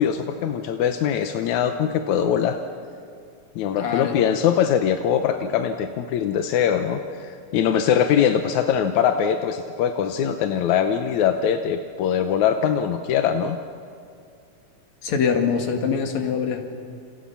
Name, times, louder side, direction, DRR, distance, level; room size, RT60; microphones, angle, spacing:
voice 1, 0.0-2.6 3.6-13.6, left 8 dB, 90° left, 6 dB, 2.4 m, -22 dB
voice 2, 3.8-4.3 15.0-16.6, left 6 dB, 70° left, 4 dB, 3.3 m, -24 dB
29.5 x 29.0 x 5.8 m, 2.4 s
omnidirectional pair, 3.3 m